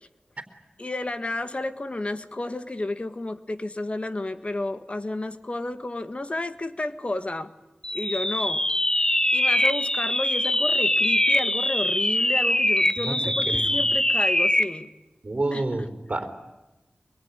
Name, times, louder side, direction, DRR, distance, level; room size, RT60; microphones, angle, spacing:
voice 1, 0.8-7.5 7.9-8.6 9.3-14.9 15.5-15.7, left 2 dB, 40° left, 10 dB, 1.6 m, -31 dB
sound 1, 7.8-14.8, left 1 dB, 20° left, 1.2 m, -23 dB
voice 2, 13.0-13.8 15.2-16.3, right 2 dB, 45° right, 4 dB, 4.0 m, -29 dB
25.0 x 23.0 x 9.9 m, 1.0 s
wide cardioid pair, 55°, 3 cm